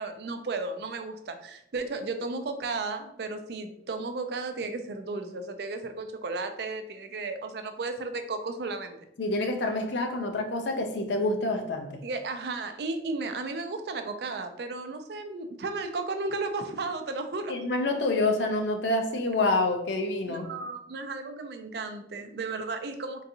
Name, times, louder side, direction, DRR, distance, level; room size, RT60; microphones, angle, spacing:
voice 1, 0.0-9.0 12.0-17.5 20.3-23.2, right 3 dB, 65° right, 7 dB, 0.4 m, -34 dB
voice 2, 9.2-12.0 17.5-20.5, left 2 dB, 85° left, 5 dB, 0.5 m, -27 dB
3.8 x 2.7 x 2.6 m, 0.74 s
head